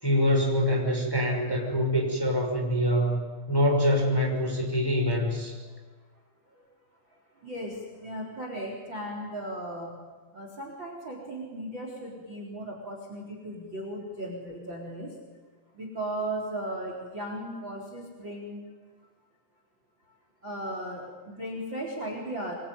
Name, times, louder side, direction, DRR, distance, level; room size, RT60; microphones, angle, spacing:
voice 1, 0.0-5.6, equal, 5° left, 1 dB, 5.2 m, -25 dB
voice 2, 7.1-9.9 10.3-15.1 15.7-18.7 20.4-22.5, right 1 dB, 25° right, 1 dB, 4.3 m, -36 dB
26.5 x 23.0 x 9.6 m, 1.3 s
omnidirectional pair, 5.1 m